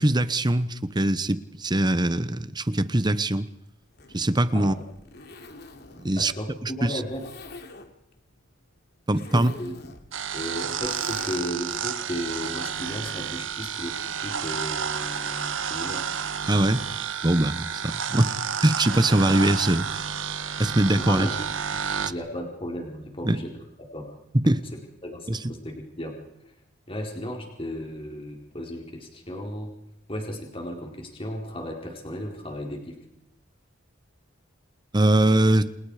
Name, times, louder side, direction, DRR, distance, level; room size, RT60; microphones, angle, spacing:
voice 1, 0.0-3.5 4.1-4.7 6.0-6.3 6.6-7.0 9.1-9.5 16.5-16.8 17.2-20.3 20.6-21.3 23.2-23.4 24.5-24.6 25.3-25.4 34.9-35.7, right 1 dB, 20° right, 14 dB, 1.0 m, -22 dB
Zipper (clothing), 3.8-11.8, left 3 dB, 55° left, 3.1 m, -46 dB
voice 2, 6.2-7.3 9.1-9.9 10.3-16.1 19.1-19.2 21.0-21.4 22.1-24.1 24.4-24.5 25.0-26.1 26.5-26.6 26.9-29.7 30.1-33.0, equal, 30° left, 1 dB, 4.5 m, -35 dB
sound 1, 10.1-22.1, right 7 dB, 75° right, 1.5 m, -31 dB
30.0 x 28.0 x 5.0 m, 0.81 s
head